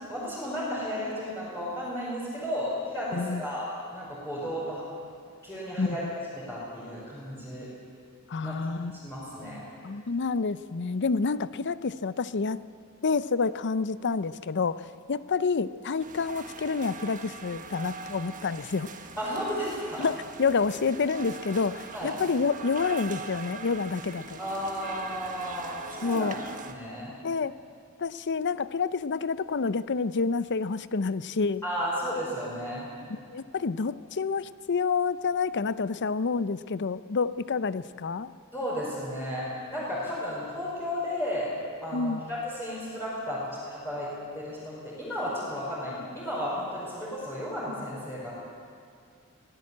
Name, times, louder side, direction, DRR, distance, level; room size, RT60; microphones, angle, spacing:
voice 1, 0.1-4.8 5.4-6.1 6.3-7.7 8.4-8.6 9.0-9.6 19.2-20.1 21.9-22.2 24.4-26.3 26.7-27.1 31.6-32.9 38.5-41.5 41.8-44.1 44.3-48.3, equal, 10° left, -9 dB, 5.4 m, -33 dB
voice 2, 3.1-3.4 5.8-6.0 8.3-8.9 9.8-12.7 13.0-18.9 20.0-24.4 26.0-26.4 27.2-27.5 28.0-31.6 33.3-38.3 41.9-42.2, left 4 dB, 55° left, 16 dB, 0.6 m, -28 dB
sound 1, 16.0-26.7, right 4 dB, 35° right, 1.5 m, -42 dB
24.5 x 17.5 x 8.6 m, 2.2 s
head